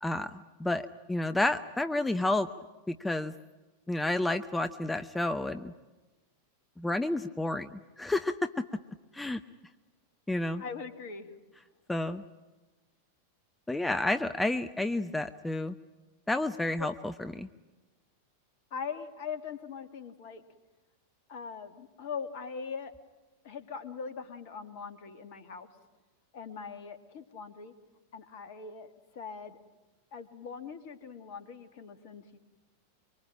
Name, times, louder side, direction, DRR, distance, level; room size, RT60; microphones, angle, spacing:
voice 1, 0.0-2.5 2.9-3.3 3.9-5.7 6.8-8.7 9.1-9.4 10.3-10.6 11.9-12.2 13.7-15.7 16.3-17.5, left 2 dB, 5° left, 10 dB, 0.8 m, -30 dB
voice 2, 10.6-11.4 16.8-16.9 18.7-20.4 21.3-22.9 23.4-25.7 26.3-27.7 28.1-29.6 30.1-32.4, left 6 dB, 50° left, 10 dB, 2.5 m, -41 dB
24.5 x 24.5 x 8.9 m, 1.2 s
figure-of-eight pair, 90°, 0 cm